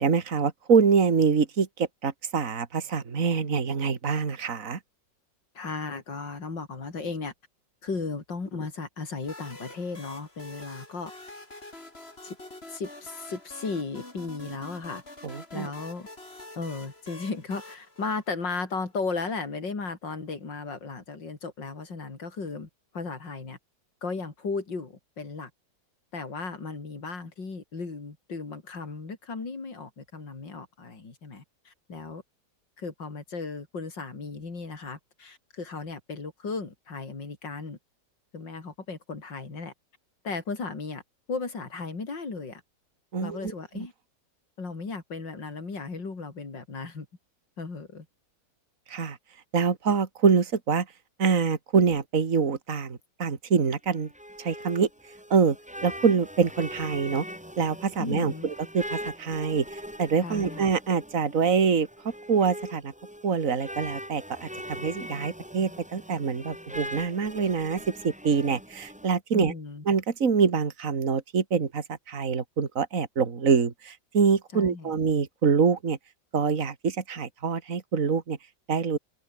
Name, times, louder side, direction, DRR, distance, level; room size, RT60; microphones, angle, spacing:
voice 1, 0.0-4.8 15.2-15.7 43.1-43.9 48.9-49.2 49.5-50.9 51.2-54.1 54.4-54.9 55.3-55.6 55.8-57.2 57.6-61.9 62.3-62.9 63.2-69.5 69.9-76.0 76.3-78.4 78.7-79.0, right 5 dB, 45° right, 2.5 m, -25 dB
voice 2, 5.5-7.3 7.8-11.1 12.2-12.4 12.7-15.0 15.5-16.1 16.6-22.7 22.9-23.6 24.0-25.5 26.1-32.2 32.8-37.8 38.3-39.7 40.2-41.0 41.3-42.6 43.2-43.9 44.6-47.1 47.6-48.1 58.0-58.5 60.2-60.7 69.3-69.8 74.5-75.0, left 4 dB, 80° left, 4.6 m, -35 dB
sound 1, 9.2-18.9, left 2 dB, 35° left, 5.3 m, -46 dB
sound 2, 53.8-69.1, equal, 5° right, 5.8 m, -41 dB
open air
omnidirectional pair, 1.9 m